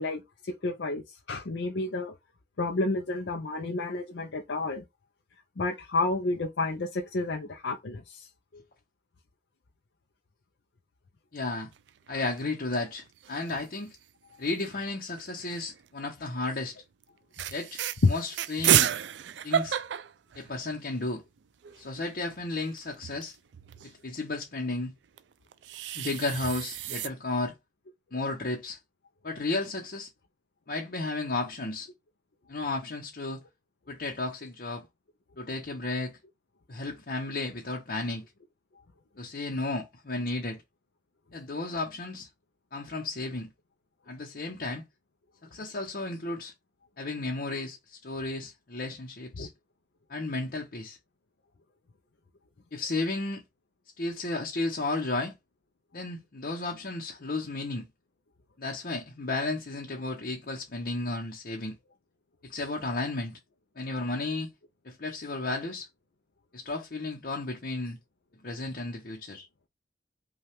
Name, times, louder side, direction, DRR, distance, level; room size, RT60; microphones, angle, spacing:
voice 1, 0.0-2.1 2.6-4.8 5.6-8.3 18.0-18.1 49.4-49.5, left 3 dB, 85° left, 0.6 m, -30 dB
voice 2, 11.3-11.7 12.1-14.0 14.4-16.8 17.5-17.8 18.1-18.9 19.4-19.8 20.3-21.2 21.8-23.3 23.8-24.9 25.9-27.5 28.1-28.8 29.2-30.1 30.7-31.9 32.5-33.4 33.9-34.8 35.4-36.1 36.7-38.2 39.2-40.6 41.3-42.3 42.7-43.5 44.1-44.8 45.5-46.5 47.0-49.5 50.1-51.0 52.7-53.4 54.0-55.4 55.9-57.9 58.6-61.7 62.4-63.4 63.8-64.5 64.8-65.9 66.5-68.0 68.4-69.5, left 2 dB, 55° left, 0.8 m, -33 dB
sound 1, 11.7-12.4 12.8-12.9 13.1-13.7 14.6-15.8 16.4-16.6 17.0-17.1 17.3-21.0 21.4-21.5 21.6-23.9 25.2-27.1, right 10 dB, 85° right, 0.4 m, -31 dB
5.5 x 2.4 x 3.5 m
head